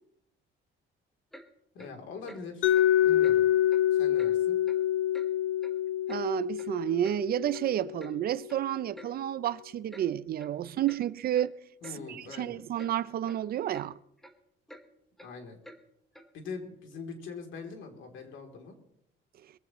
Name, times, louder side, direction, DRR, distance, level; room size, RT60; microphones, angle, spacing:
Clock, 1.3-1.5 1.8-1.9 2.3-2.4 2.7-2.9 3.2-3.4 3.7-3.8 4.2-4.3 4.7-4.8 5.1-5.3 5.6-6.2 6.6-6.7 7.0-7.2 7.5-7.7 8.0-8.1 8.5-8.6 8.9-9.1 9.4-9.6 9.9-10.1 10.4-10.5 10.8-11.0 11.3-11.5 11.8-12.0 12.3-12.5 12.8-12.9 13.3-13.4 13.7-13.9 14.2-14.3 14.7-14.8 15.2-15.3 15.6-15.8 16.1-16.3, equal, ahead, 1.2 m, -50 dB
voice 1, 1.7-3.5 3.9-4.6 11.8-12.6 15.2-15.6 16.3-18.8, left 4 dB, 70° left, 3.1 m, -43 dB
Mallet percussion, 2.6-8.5, left 11 dB, 85° left, 0.8 m, -26 dB
voice 2, 6.1-11.5 12.1-14.0, right 12 dB, 50° right, 0.5 m, -30 dB
22.5 x 15.5 x 3.1 m
cardioid pair, 170°, 20 cm